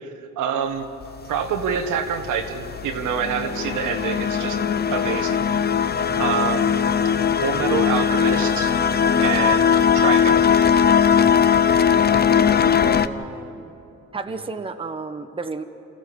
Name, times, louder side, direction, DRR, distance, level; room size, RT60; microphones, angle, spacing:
voice 1, 0.4-0.9 1.3-4.6 4.9-5.4 6.2-6.8 7.4-8.7 9.2-10.4 14.3-14.4, right 7 dB, 85° right, 5 dB, 1.6 m, -26 dB
sound 1, 1.0-13.1, left 7 dB, 35° left, 0.7 m, -19 dB
sound 2, 1.2-12.9, left 2 dB, 75° left, 4.8 m, -43 dB
voice 2, 11.9-13.8 14.1-15.6, right 4 dB, 20° right, 7 dB, 1.0 m, -34 dB
28.0 x 15.0 x 7.1 m, 2.8 s
cardioid pair, 90°, 30 cm